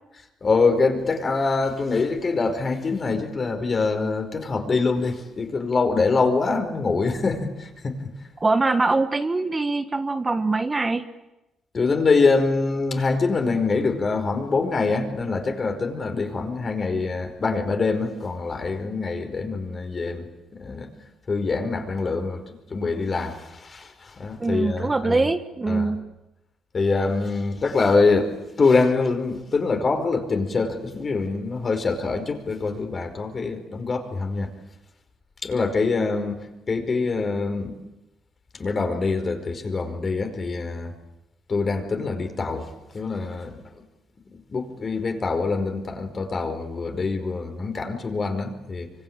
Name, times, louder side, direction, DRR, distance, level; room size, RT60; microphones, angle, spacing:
voice 1, 0.4-8.2 11.7-20.9 21.3-25.2 25.7-25.9 26.7-34.5 35.4-37.7 38.5-40.9 41.5-43.6 44.3-48.9, left 4 dB, 35° left, 6 dB, 5.1 m, -24 dB
voice 2, 8.4-11.0 24.4-26.0, right 3 dB, 25° right, 8 dB, 1.5 m, -23 dB
26.0 x 25.0 x 9.0 m, 0.97 s
cardioid pair, 90°, 0 cm